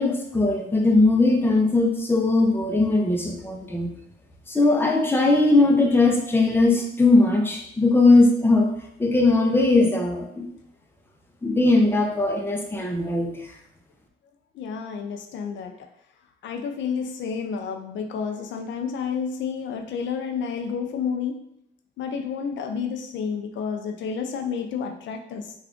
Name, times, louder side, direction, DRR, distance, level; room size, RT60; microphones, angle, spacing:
voice 1, 0.0-3.9 4.5-8.7 9.0-10.5 11.4-13.5, left 2 dB, 10° left, 1 dB, 0.6 m, -19 dB
voice 2, 14.5-15.7 16.4-21.4 22.0-25.5, left 6 dB, 70° left, 4 dB, 0.5 m, -30 dB
3.3 x 2.4 x 3.7 m, 0.75 s
cardioid pair, 90°, 20 cm